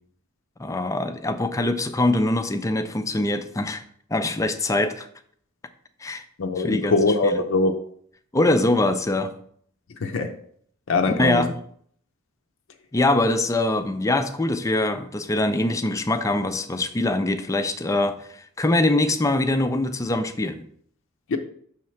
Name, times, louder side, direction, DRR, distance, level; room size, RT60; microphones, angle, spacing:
voice 1, 0.6-3.8 4.1-5.1 6.0-6.2 6.6-7.4 8.3-9.3 11.1-11.5 12.9-20.6, left 2 dB, 15° left, 0.4 m, -23 dB
voice 2, 6.4-7.7 10.0-10.3 10.9-11.4 21.3-21.4, left 3 dB, 60° left, 0.5 m, -22 dB
6.4 x 3.2 x 5.7 m
head